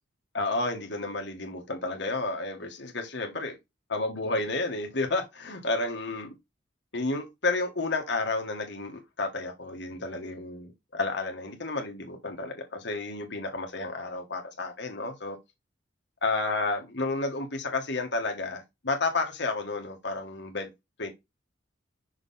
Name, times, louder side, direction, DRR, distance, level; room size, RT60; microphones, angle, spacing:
voice 1, 0.3-3.5 3.9-6.3 6.9-15.4 16.2-20.7 21.0-21.1, left 3 dB, 65° left, 1.6 m, -31 dB
6.1 x 3.8 x 4.2 m
head